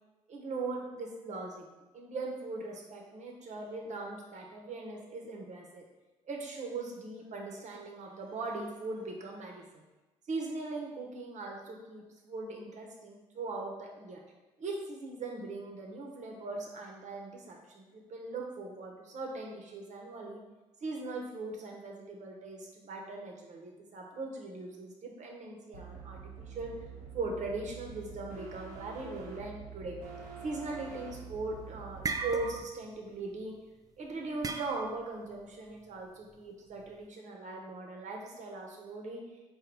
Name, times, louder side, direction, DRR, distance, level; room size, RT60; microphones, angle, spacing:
voice 1, 0.3-1.6 1.9-5.9 6.3-9.8 10.3-14.2 14.6-20.4 20.8-26.7 27.1-30.0 30.4-33.5 34.0-39.2, right 3 dB, 55° right, 0 dB, 1.0 m, -40 dB
sound 1, 25.7-32.6, right 6 dB, 85° right, 1.0 m, -47 dB
sound 2, 31.2-31.5 31.8-32.9 33.2-33.4 34.4-35.1, right 4 dB, 25° right, 0.4 m, -37 dB
3.9 x 2.5 x 4.5 m, 1.1 s
supercardioid pair, 65°, 14 cm